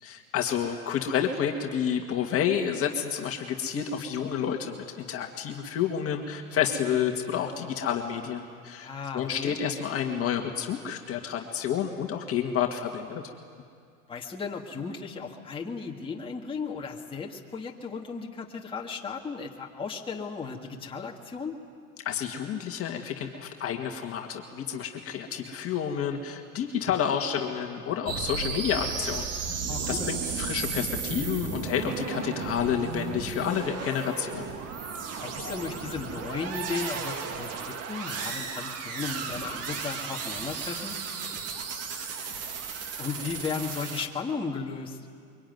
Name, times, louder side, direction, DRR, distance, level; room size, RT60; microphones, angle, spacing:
voice 1, 0.0-8.9 9.1-13.2 22.1-29.3 29.9-34.5 35.4-35.5, left 8 dB, 30° left, 3 dB, 2.0 m, -29 dB
voice 2, 8.8-9.5 14.1-21.6 29.7-30.1 35.2-41.0 43.0-45.0, left 5 dB, 10° left, -1 dB, 2.1 m, -35 dB
sound 1, 28.1-44.1, right 6 dB, 35° right, 2.0 m, -34 dB
23.5 x 23.5 x 9.5 m, 2.2 s
hypercardioid pair, 115°, 44 cm